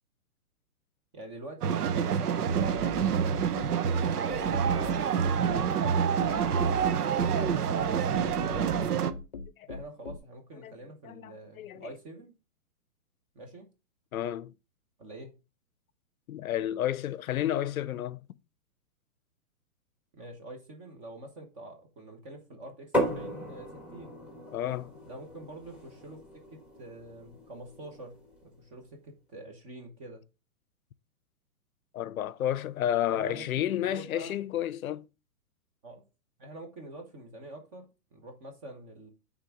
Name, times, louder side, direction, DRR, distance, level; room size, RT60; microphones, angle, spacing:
voice 1, 1.1-8.1 8.4-9.0 9.7-12.3 13.3-13.7 15.0-15.3 20.1-24.2 25.0-26.2 26.5-30.2 33.1-34.3 35.8-36.0 36.4-39.1, right 2 dB, 20° right, 1.0 m, -46 dB
sound 1, 1.6-9.1, right 7 dB, 85° right, 0.9 m, -27 dB
sound 2, 2.5-10.2, left 4 dB, 30° left, 0.4 m, -39 dB
voice 2, 11.0-11.9 14.1-14.5 16.3-18.3 24.5-24.9 31.9-35.1, left 11 dB, 65° left, 0.6 m, -31 dB
sound 3, 22.9-28.6, equal, 5° right, 1.2 m, -36 dB
9.2 x 3.6 x 3.6 m
hypercardioid pair, 160°, 45 cm